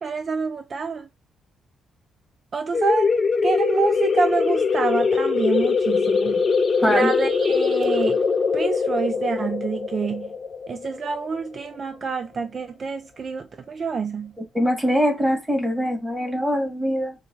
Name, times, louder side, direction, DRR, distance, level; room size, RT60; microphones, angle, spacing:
voice 1, 0.0-1.1 2.5-3.1 3.4-6.4 6.8-8.2 8.5-10.3 10.7-14.3, right 5 dB, 45° right, 0.3 m, -27 dB
sound 1, 2.7-12.1, left 5 dB, 35° left, 0.9 m, -22 dB
voice 2, 14.5-17.1, equal, 10° right, 1.9 m, -22 dB
4.7 x 2.9 x 2.7 m
cardioid pair, 90°, 0 cm